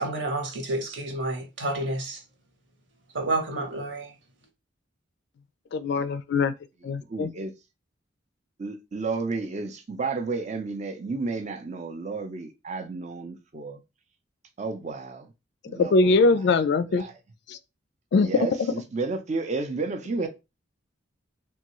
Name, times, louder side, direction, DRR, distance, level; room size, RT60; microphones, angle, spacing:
voice 1, 0.0-2.2 3.1-4.1, right 2 dB, 65° right, 1.0 m, -29 dB
voice 2, 5.7-6.5 6.8-7.3 15.6-17.0 17.5-17.6 18.1-18.7, left 3 dB, 60° left, 0.3 m, -22 dB
voice 3, 7.1-7.5 8.6-13.8 14.6-15.3 15.7-16.4 16.9-17.1 18.2-20.3, right 3 dB, 35° right, 0.5 m, -32 dB
3.5 x 2.3 x 3.0 m
head